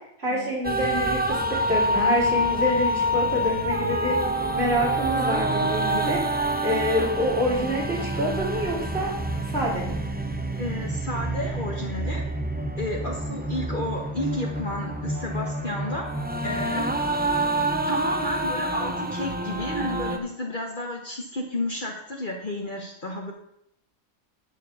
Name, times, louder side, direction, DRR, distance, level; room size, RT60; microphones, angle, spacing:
voice 1, 0.2-4.2 4.5-9.1 9.5-9.9, equal, 45° right, -4 dB, 3.8 m, -27 dB
sound 1, 0.6-20.2, right 1 dB, 10° right, 0.4 m, -27 dB
voice 2, 10.6-12.2 12.8-16.1 16.4-16.9 17.8-23.3, left 1 dB, 35° left, 1 dB, 1.3 m, -32 dB
11.0 x 4.6 x 6.9 m, 0.76 s
omnidirectional pair, 1.5 m